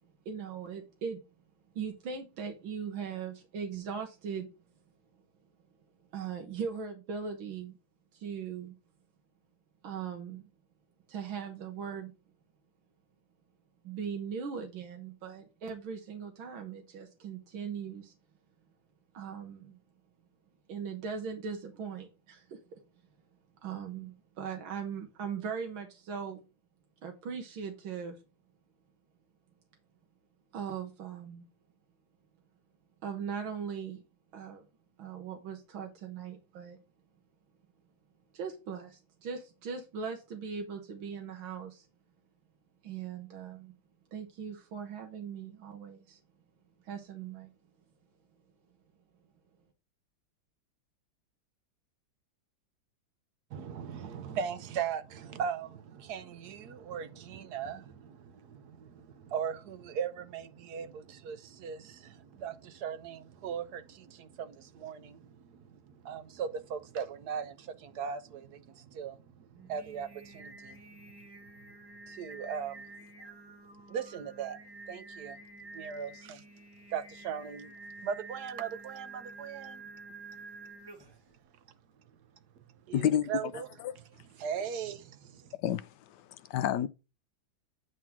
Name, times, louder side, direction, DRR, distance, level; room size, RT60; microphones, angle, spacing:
voice 1, 0.3-1.2 1.8-4.5 6.1-7.8 8.1-8.7 9.8-10.4 11.1-12.1 13.8-18.1 19.1-19.8 20.7-22.8 23.6-26.5 27.0-28.2 30.5-31.5 33.0-34.0 34.3-34.6 35.0-36.8 38.3-41.9 42.8-43.7 44.1-46.2 46.9-47.5, right 6 dB, 85° right, 2.0 m, -39 dB
voice 2, 53.5-70.8 72.1-72.8 73.2-73.3 73.9-74.6 74.9-75.4 75.7-76.4 76.9-77.7 78.0-79.8 82.9-83.7 84.4-85.5, right 7 dB, 60° right, 1.2 m, -39 dB
Singing, 69.5-81.3, right 3 dB, 20° right, 0.7 m, -49 dB
voice 3, 82.9-83.3 83.8-83.9 85.6-86.9, left 10 dB, 75° left, 1.1 m, -30 dB
9.2 x 3.7 x 5.9 m
omnidirectional pair, 2.1 m